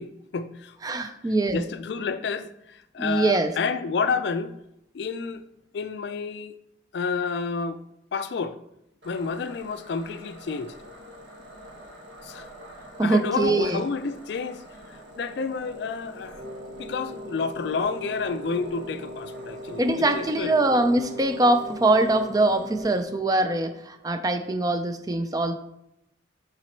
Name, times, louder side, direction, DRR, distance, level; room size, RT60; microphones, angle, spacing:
voice 1, 0.0-1.1 1.5-4.5 4.9-5.4 5.7-6.6 6.9-7.8 8.1-8.6 9.0-10.7 12.2-12.5 13.0-16.4 16.7-20.5, left 5 dB, 60° left, 0.3 m, -30 dB
voice 2, 0.8-1.6 3.0-3.5 13.0-13.8 19.8-25.5, right 2 dB, 20° right, 0.3 m, -23 dB
sound 1, 9.0-23.0, equal, 70° right, 1.4 m, -44 dB
Wind instrument woodwind instrument, 16.3-23.6, equal, 40° right, 1.1 m, -40 dB
5.9 x 4.0 x 4.4 m
head